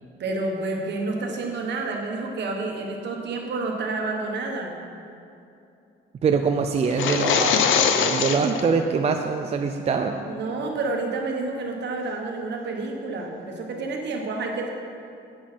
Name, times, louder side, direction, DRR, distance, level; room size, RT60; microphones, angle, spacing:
voice 1, 0.2-4.7 10.2-14.7, right 3 dB, 60° right, 1 dB, 1.4 m, -29 dB
voice 2, 6.2-10.1, right 5 dB, 30° right, 4 dB, 0.4 m, -24 dB
sound 1, 6.9-8.6, left 6 dB, 70° left, 0.7 m, -22 dB
10.5 x 9.2 x 4.5 m, 2.7 s
cardioid pair, 170°, 21 cm